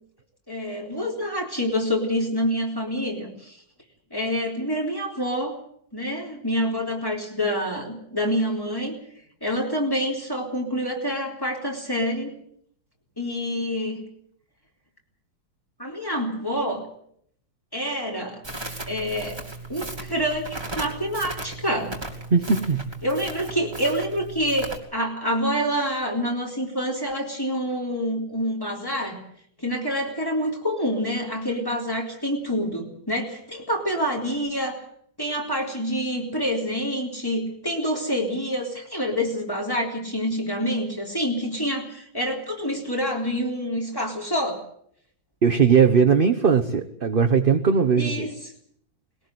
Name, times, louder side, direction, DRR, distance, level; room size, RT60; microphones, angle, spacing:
voice 1, 0.5-3.6 4.1-5.6 5.9-8.9 9.4-12.3 13.2-14.0 15.8-16.8 17.7-18.4 18.9-19.4 19.7-21.9 23.0-29.2 29.6-34.8 35.2-44.6 48.0-48.3, equal, 10° left, 0 dB, 3.9 m, -27 dB
Crackle, 18.4-24.8, right 2 dB, 15° right, 2.6 m, -36 dB
voice 2, 22.3-22.9 45.4-48.3, right 6 dB, 40° right, 5 dB, 0.9 m, -19 dB
20.5 x 18.0 x 7.9 m, 0.67 s
omnidirectional pair, 2.1 m